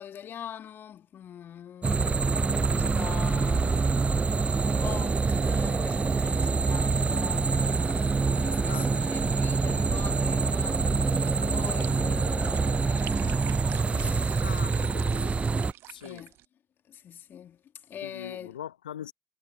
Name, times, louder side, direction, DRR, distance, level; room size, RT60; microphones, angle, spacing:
voice 1, 0.0-4.4 4.7-13.5 13.9-14.5 15.9-16.3 16.9-18.6, left 9 dB, 50° left, 2.1 m, -43 dB
sound 1, 1.8-15.7, right 4 dB, 25° right, 0.6 m, -26 dB
sound 2, 11.1-16.5, right 15 dB, 65° right, 1.3 m, -47 dB
voice 2, 14.4-15.3 15.9-16.2 18.0-19.1, left 10 dB, 80° left, 1.1 m, -41 dB
figure-of-eight pair, 45°, 4 cm